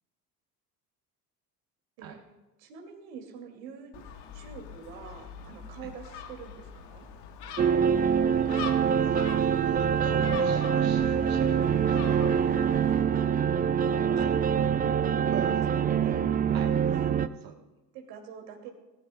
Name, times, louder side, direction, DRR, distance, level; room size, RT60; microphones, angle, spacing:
voice 1, 2.6-3.9 4.3-7.1 13.1-13.3 13.8-15.6 16.0-16.2 16.8-17.2 17.9-18.7, right 6 dB, 65° right, 3 dB, 2.7 m, -46 dB
Gull seagull, 3.9-13.0, left 7 dB, 55° left, 1.5 m, -43 dB
sound 1, 7.6-17.3, right 8 dB, 20° right, 0.4 m, -25 dB
voice 2, 8.3-12.3 14.1-14.3 15.3-15.9 16.5-16.7 17.4-17.5, right 8 dB, 45° right, 2 dB, 1.3 m, -43 dB
19.0 x 14.5 x 2.3 m, 1.1 s
figure-of-eight pair, 60°, 49 cm